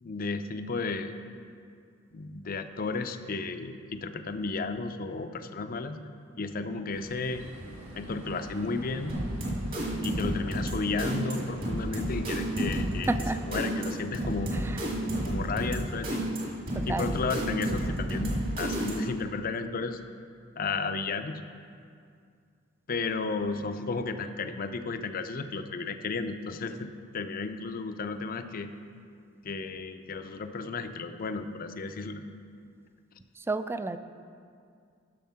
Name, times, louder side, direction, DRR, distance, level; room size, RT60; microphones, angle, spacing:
voice 1, 0.0-1.1 2.1-6.0 6.4-7.4 8.0-9.2 10.0-13.1 13.5-16.2 16.9-20.0 20.6-21.4 22.9-28.7 29.4-32.2, left 4 dB, 45° left, 8 dB, 0.5 m, -33 dB
sound 1, 6.9-13.8, right 1 dB, 75° right, 1.6 m, -44 dB
sound 2, 9.1-19.2, right 1 dB, 50° right, 2.1 m, -31 dB
voice 2, 13.1-13.4 14.5-14.8 16.7-17.2 33.4-34.0, right 2 dB, 10° right, 11 dB, 0.3 m, -31 dB
11.0 x 6.3 x 5.7 m, 2.3 s
head